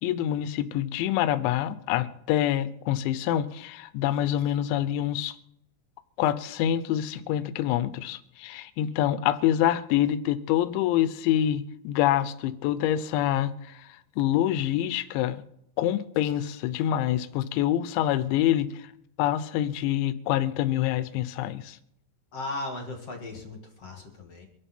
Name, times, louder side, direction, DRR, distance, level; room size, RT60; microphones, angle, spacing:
voice 1, 0.0-5.4 6.2-13.9 14.2-15.4 15.8-18.9 19.2-21.8, left 12 dB, 80° left, 3.2 m, -26 dB
voice 2, 22.3-24.4, left 2 dB, 45° left, 2.3 m, -37 dB
24.5 x 12.5 x 4.4 m
omnidirectional pair, 5.4 m